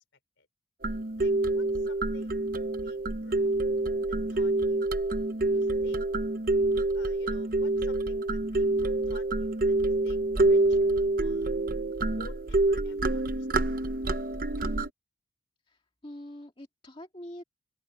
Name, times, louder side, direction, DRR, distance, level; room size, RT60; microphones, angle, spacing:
sound 1, 0.8-14.9, right 2 dB, 45° right, 0.8 m, -27 dB
voice 1, 1.2-2.4 2.8-3.6 4.1-5.0 5.5-6.0 6.9-11.5 12.1-13.8, left 2 dB, 70° left, 4.2 m, -52 dB
voice 2, 15.7-17.4, left 1 dB, 25° left, 2.0 m, -45 dB
open air
head